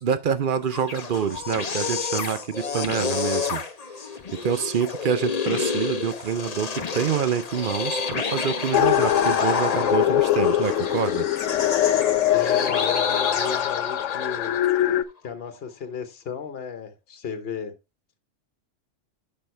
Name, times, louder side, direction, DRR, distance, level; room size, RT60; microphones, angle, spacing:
voice 1, 0.0-3.6 4.3-11.3, right 7 dB, 50° right, 0.7 m, -26 dB
sound 1, 0.6-14.7, left 5 dB, 35° left, 0.8 m, -30 dB
sound 2, 8.7-15.0, left 12 dB, 85° left, 1.0 m, -22 dB
voice 2, 12.3-15.0 15.2-17.7, left 6 dB, 55° left, 1.2 m, -34 dB
10.5 x 5.6 x 3.3 m
omnidirectional pair, 1.2 m